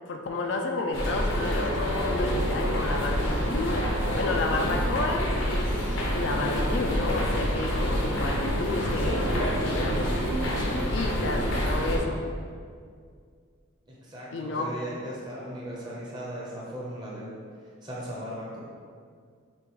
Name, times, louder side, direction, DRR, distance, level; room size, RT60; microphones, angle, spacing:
voice 1, 0.1-3.8 4.1-9.2 9.6-10.0 10.5-12.2 14.3-14.7, left 2 dB, 60° left, 2 dB, 0.4 m, -31 dB
sound 1, 0.9-12.0, equal, 80° left, 0.9 m, -27 dB
voice 2, 13.9-17.4 17.8-18.6, equal, 20° right, -5 dB, 0.8 m, -37 dB
6.7 x 2.5 x 3.1 m, 2.1 s
head